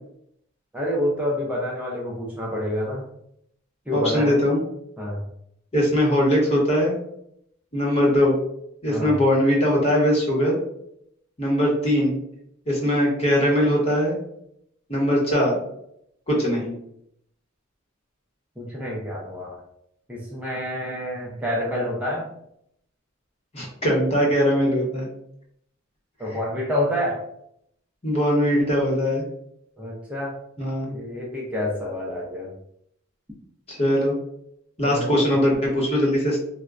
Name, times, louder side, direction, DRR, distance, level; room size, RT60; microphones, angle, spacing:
voice 1, 0.7-3.1 3.9-4.4 5.0-5.2 8.9-9.1 18.6-19.6 20.1-22.3 26.2-27.2 29.8-30.3 30.9-32.5 34.8-35.3, left 1 dB, 5° right, -4 dB, 0.5 m, -28 dB
voice 2, 3.9-4.6 5.7-7.0 7.7-8.4 8.8-10.6 11.4-12.2 12.7-14.2 14.9-15.5 16.3-16.7 23.5-25.1 26.3-26.4 28.0-29.2 30.6-30.9 33.7-34.1 34.8-36.4, equal, 30° left, -2 dB, 1.0 m, -21 dB
4.2 x 2.2 x 2.4 m, 0.75 s
head